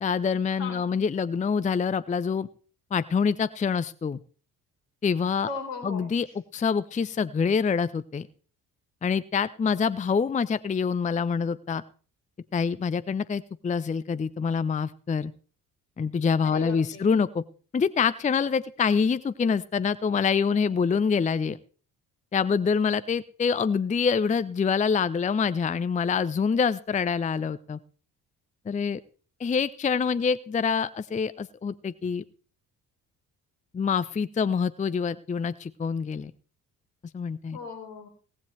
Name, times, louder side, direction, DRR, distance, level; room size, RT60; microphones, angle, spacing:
voice 1, 0.0-2.5 2.9-4.2 5.0-5.5 5.8-6.3 6.5-8.3 9.0-11.8 12.5-15.3 16.0-17.4 17.7-21.6 22.3-27.8 28.7-29.0 29.4-32.2 33.7-36.3 37.1-37.6, left 6 dB, 15° left, 16 dB, 0.6 m, -26 dB
voice 2, 0.6-0.9 5.4-6.4 16.4-17.1 37.5-38.1, left 4 dB, 70° left, 4 dB, 4.2 m, -38 dB
17.5 x 15.5 x 3.2 m, 0.41 s
figure-of-eight pair, 45°, 47 cm